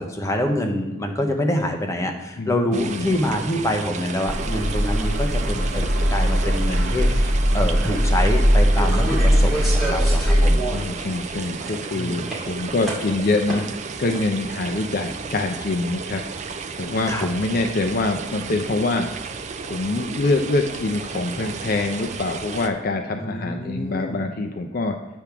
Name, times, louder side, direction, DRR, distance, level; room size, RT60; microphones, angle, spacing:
voice 1, 0.0-10.6 11.9-12.2 17.1-17.3 23.2-24.2, left 1 dB, 15° left, 3 dB, 0.8 m, -26 dB
voice 2, 2.4-3.1 10.7-19.1 19.6-25.0, left 2 dB, 50° left, 4 dB, 0.5 m, -25 dB
sound 1, 2.7-22.7, right 5 dB, 35° right, 0.4 m, -33 dB
sound 2, 4.3-10.6, equal, 80° right, 1.4 m, -19 dB
sound 3, 7.8-7.9 8.7-11.0 11.3-11.9 12.2-12.4 12.8-13.8 14.1-14.2, right 2 dB, ahead, 2.1 m, -29 dB
8.3 x 3.5 x 5.9 m, 1.1 s
head